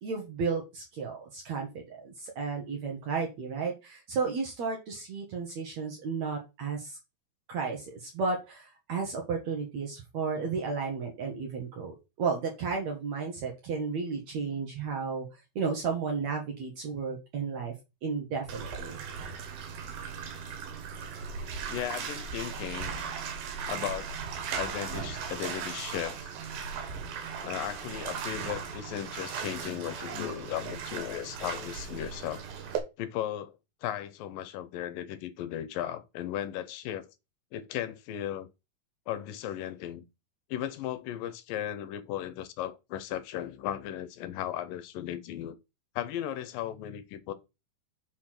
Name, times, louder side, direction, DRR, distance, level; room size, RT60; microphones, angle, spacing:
voice 1, 0.0-7.0 7.5-15.3 15.6-17.7 18.0-19.0, right 5 dB, 55° right, 2.5 m, -33 dB
Bathtub (filling or washing), 18.5-32.8, right 6 dB, 85° right, 3.3 m, -37 dB
voice 2, 21.7-23.0 23.6-24.1 24.6-26.3 27.4-32.4 33.0-33.5 33.8-37.1 37.5-38.5 39.1-40.0 40.5-45.6 46.0-47.3, left 11 dB, 75° left, 2.4 m, -36 dB
6.4 x 5.6 x 5.9 m
omnidirectional pair, 4.1 m